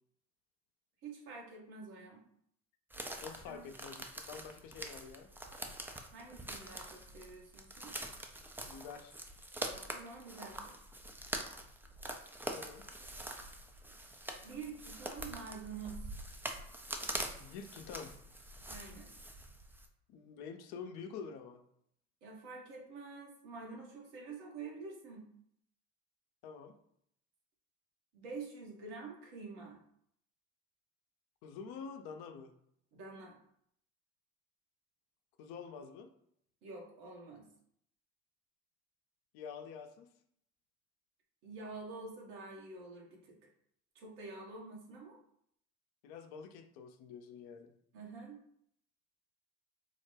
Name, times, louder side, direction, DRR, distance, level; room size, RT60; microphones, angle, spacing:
voice 1, 1.0-2.2 3.5-3.7 6.1-7.9 9.7-10.8 14.4-16.1 18.7-19.1 22.2-25.3 28.1-29.8 32.9-33.4 36.6-37.5 41.4-43.3 43.9-45.2 47.9-48.4, right 4 dB, 75° right, -1 dB, 1.2 m, -47 dB
sound 1, 2.9-19.9, right 1 dB, 5° right, 0.3 m, -44 dB
voice 2, 3.2-5.3 8.7-9.1 12.5-12.8 17.3-18.1 20.1-21.6 26.4-26.7 31.4-32.5 35.4-36.1 39.3-40.1 46.0-47.7, left 6 dB, 65° left, 6 dB, 0.6 m, -47 dB
4.0 x 2.1 x 3.2 m, 0.70 s
hypercardioid pair, 65°, 41 cm